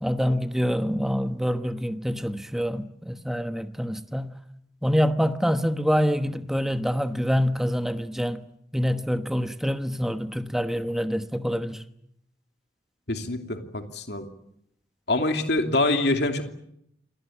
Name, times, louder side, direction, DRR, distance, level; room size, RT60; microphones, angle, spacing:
voice 1, 0.0-4.3 4.8-8.4 8.7-11.8, equal, ahead, 1.1 m, -26 dB
voice 2, 13.1-14.3 15.1-16.4, left 2 dB, 60° left, 2.9 m, -25 dB
28.0 x 19.5 x 8.7 m
head